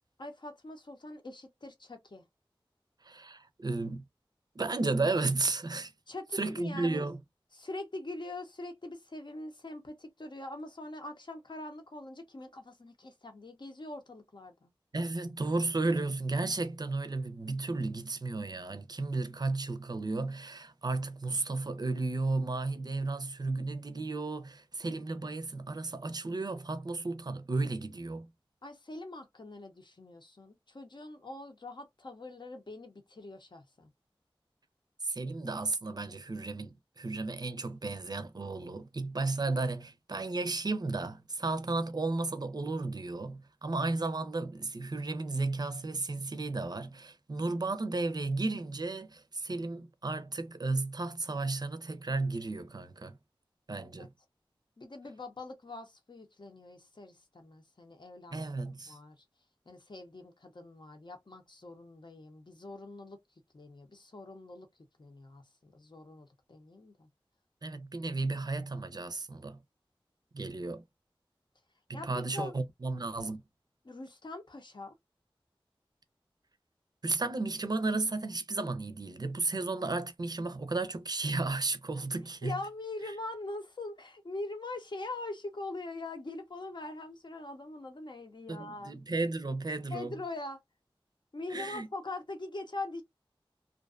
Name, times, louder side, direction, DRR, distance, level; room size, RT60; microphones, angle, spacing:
voice 1, 0.2-2.2 6.1-7.1 7.5-14.7 28.6-33.9 53.8-54.1 54.8-58.4 58.9-59.2 59.7-63.2 63.5-64.7 65.0-67.1 71.9-72.6 73.8-74.9 82.4-88.9 89.9-90.6 91.3-93.0, left 2 dB, 55° left, 0.8 m, -43 dB
voice 2, 3.0-4.0 4.6-5.9 6.3-7.2 14.9-28.3 35.0-53.2 53.7-54.1 58.3-59.0 67.6-69.6 70.3-70.8 71.9-73.4 77.0-82.6 88.5-90.1 91.5-91.9, right 3 dB, 45° right, 0.5 m, -33 dB
2.5 x 2.2 x 2.4 m
wide cardioid pair, 50°, 9 cm